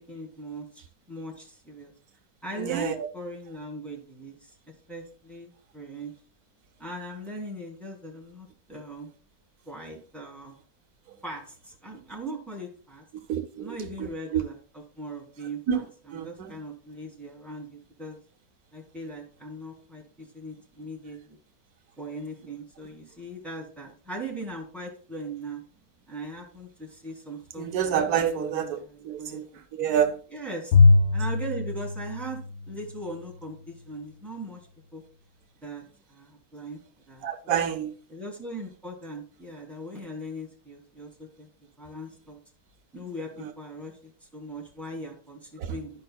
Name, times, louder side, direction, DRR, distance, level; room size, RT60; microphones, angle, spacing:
voice 1, 0.1-1.9 2.4-6.1 6.8-9.1 9.7-10.6 11.2-13.0 13.6-14.5 15.0-15.6 16.1-18.2 18.7-21.4 22.0-25.6 26.1-29.9 30.3-30.7 31.1-32.4 32.7-34.6 34.9-35.0 35.6-35.8 36.1-36.8 37.1-37.3 38.1-41.5 41.8-42.4 42.9-45.9, right 1 dB, ahead, 2.1 m, -39 dB
voice 2, 2.6-3.1 13.1-14.4 15.7-15.8 16.1-16.5 27.6-28.8 29.0-30.2 37.2-37.9 43.4-43.5 45.6-45.8, right 9 dB, 80° right, 1.3 m, -28 dB
Bowed string instrument, 30.7-33.1, left 3 dB, 90° left, 1.2 m, -21 dB
12.0 x 5.3 x 2.3 m
omnidirectional pair, 1.6 m